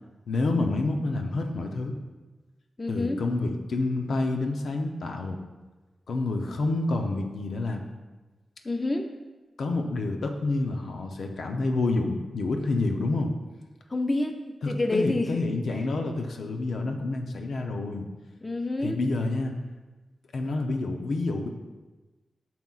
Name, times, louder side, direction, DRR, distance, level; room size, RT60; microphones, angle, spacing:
voice 1, 0.3-1.9 2.9-5.4 6.1-7.8 9.6-13.3 14.6-18.1 18.8-19.6 20.3-21.5, left 2 dB, 75° left, 4 dB, 0.7 m, -28 dB
voice 2, 2.8-3.2 8.6-9.1 13.9-15.4 18.4-19.0, left 2 dB, 25° left, 5 dB, 0.5 m, -28 dB
9.2 x 6.1 x 2.4 m, 1.2 s
wide cardioid pair, 110°, 0 cm